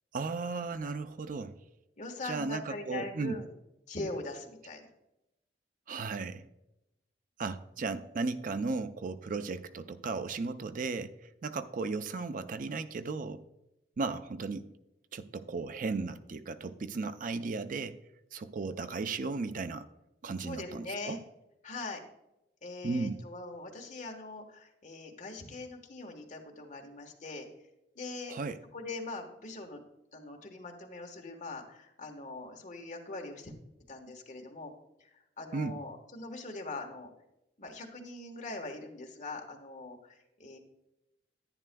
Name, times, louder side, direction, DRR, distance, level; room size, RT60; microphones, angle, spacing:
voice 1, 0.1-1.5 2.2-3.4 5.9-6.5 7.4-11.1 11.4-13.4 14.0-14.7 15.1-18.0 18.3-19.9 20.2-21.2 22.8-23.2 28.3-28.6 35.5-35.8, right 4 dB, 50° right, 11 dB, 0.4 m, -35 dB
voice 2, 2.0-3.5 3.9-4.9 20.4-21.2 21.6-22.0 22.6-27.5 27.9-28.4 28.7-29.8 30.1-33.5 33.9-34.7 35.0-37.1 37.6-40.6, left 2 dB, 45° left, 3 dB, 1.3 m, -42 dB
10.5 x 10.0 x 2.2 m, 0.89 s
head